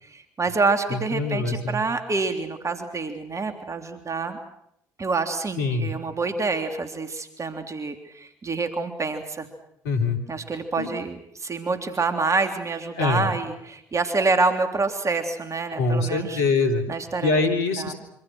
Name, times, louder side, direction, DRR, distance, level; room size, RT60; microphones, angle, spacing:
voice 1, 0.1-4.4 5.0-9.5 10.3-16.4 16.9-17.3 17.8-17.9, right 3 dB, 35° right, 6 dB, 3.4 m, -27 dB
voice 2, 0.9-1.8 5.6-5.9 9.8-10.2 10.8-10.9 13.0-13.3 15.8-16.9 17.2-17.9, left 3 dB, 80° left, 5 dB, 3.5 m, -24 dB
26.5 x 26.0 x 6.4 m, 0.76 s
hypercardioid pair, 50°, 9 cm